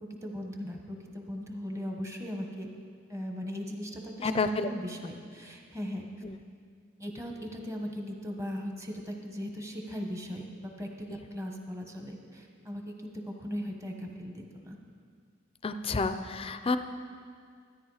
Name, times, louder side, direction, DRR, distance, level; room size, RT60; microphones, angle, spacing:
voice 1, 0.2-2.7 3.1-4.3 4.7-6.1 7.0-14.8, equal, 15° right, 2 dB, 1.2 m, -38 dB
voice 2, 4.2-4.7 6.2-6.4 11.1-11.2 15.6-16.8, left 3 dB, 30° left, 10 dB, 0.5 m, -30 dB
13.0 x 10.0 x 4.9 m, 2.1 s
head